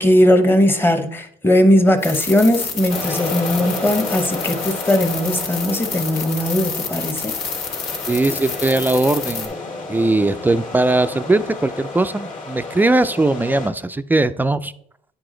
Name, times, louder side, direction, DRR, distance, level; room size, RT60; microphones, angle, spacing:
voice 1, 0.0-7.3, left 1 dB, 15° left, 0.9 m, -18 dB
sound 1, 2.0-9.5, left 5 dB, 85° left, 1.7 m, -29 dB
sound 2, 2.9-13.7, left 3 dB, 50° left, 1.7 m, -31 dB
voice 2, 8.1-9.5 9.9-14.7, right 2 dB, 10° right, 0.3 m, -19 dB
9.6 x 4.8 x 3.8 m
cardioid pair, 110°, 17 cm